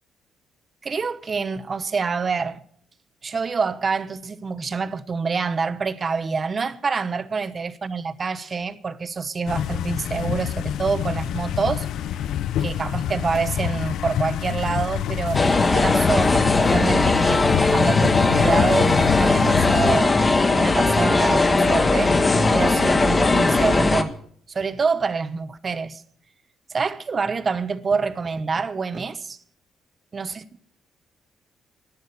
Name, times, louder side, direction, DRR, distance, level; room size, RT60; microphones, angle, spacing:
voice 1, 0.8-2.6 3.2-11.9 12.6-20.2 20.5-22.2 22.5-24.1 24.5-26.0 26.7-29.4 30.1-30.3, right 5 dB, 40° right, 1.0 m, -26 dB
sound 1, 9.5-20.0, left 10 dB, 80° left, 0.5 m, -27 dB
sound 2, 15.3-24.0, left 3 dB, 25° left, 1.3 m, -19 dB
12.0 x 11.5 x 8.3 m
cardioid pair, 90°, 0 cm